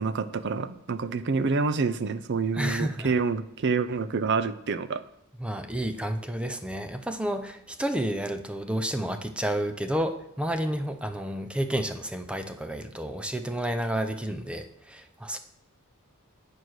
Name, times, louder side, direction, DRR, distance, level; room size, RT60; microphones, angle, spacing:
voice 1, 0.0-5.0, right 4 dB, 55° right, 14 dB, 0.5 m, -27 dB
voice 2, 2.6-3.1 5.4-15.4, right 1 dB, 5° right, 7 dB, 0.6 m, -30 dB
9.3 x 4.7 x 6.3 m, 0.81 s
head